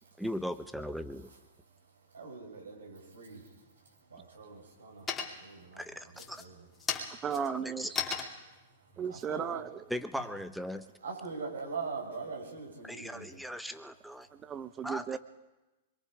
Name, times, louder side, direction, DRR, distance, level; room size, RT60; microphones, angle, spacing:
voice 1, 0.2-1.3 5.8-6.4 7.6-7.9 9.9-10.9 12.8-14.3 14.8-15.2, equal, ahead, 10 dB, 1.1 m, -38 dB
voice 2, 1.6-7.2 8.4-9.6 10.2-10.3 11.0-13.4 14.2-14.3, right 4 dB, 80° right, -1 dB, 6.4 m, -44 dB
sound 1, 3.4-4.0 4.4-4.8 5.1-5.6 6.1-10.5, left 5 dB, 20° left, 2.9 m, -38 dB
voice 3, 7.2-8.0 9.0-9.8 14.3-15.2, right 7 dB, 25° right, 12 dB, 1.0 m, -35 dB
25.0 x 23.0 x 5.0 m, 1.1 s
figure-of-eight pair, 105°, 0 cm